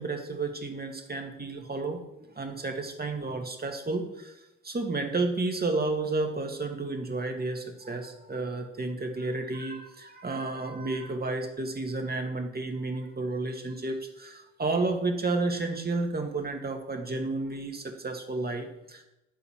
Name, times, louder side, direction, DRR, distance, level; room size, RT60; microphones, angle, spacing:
voice 1, 0.0-4.3 4.6-19.0, right 3 dB, 25° right, 4 dB, 2.0 m, -31 dB
10.5 x 3.9 x 7.3 m, 0.89 s
hypercardioid pair, 40°, 34 cm